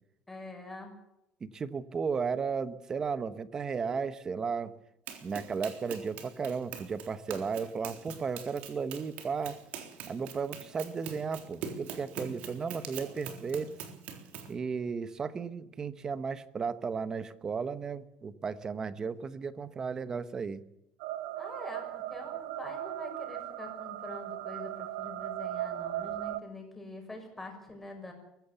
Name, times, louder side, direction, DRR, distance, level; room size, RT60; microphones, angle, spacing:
voice 1, 0.3-0.9 21.3-28.1, left 2 dB, 5° left, 3 dB, 6.3 m, -45 dB
voice 2, 1.4-4.7 5.2-9.6 10.1-13.7 14.5-20.6, right 5 dB, 25° right, 13 dB, 1.1 m, -34 dB
Run, 5.1-14.6, right 8 dB, 55° right, 3.7 m, -44 dB
sound 1, 21.0-26.4, right 13 dB, 80° right, 1.0 m, -38 dB
23.0 x 16.0 x 7.2 m, 0.87 s
cardioid pair, 145°, 3 cm